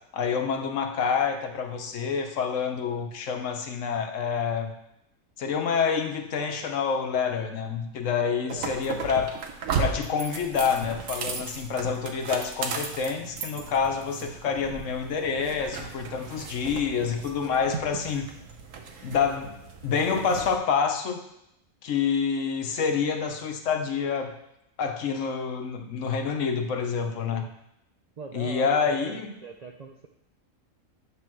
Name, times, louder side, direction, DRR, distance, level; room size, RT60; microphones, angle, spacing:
voice 1, 0.1-4.7 5.4-9.4 9.8-18.3 19.0-21.2 21.8-24.3 24.8-27.4 28.3-29.4, left 6 dB, 70° left, 5 dB, 1.2 m, -27 dB
voice 2, 8.1-8.7 27.3-27.5 28.2-30.1, right 4 dB, 60° right, 2 dB, 0.4 m, -41 dB
sound 1, 8.5-20.6, right 5 dB, 80° right, 1.2 m, -36 dB
9.6 x 3.5 x 6.1 m, 0.81 s
omnidirectional pair, 1.4 m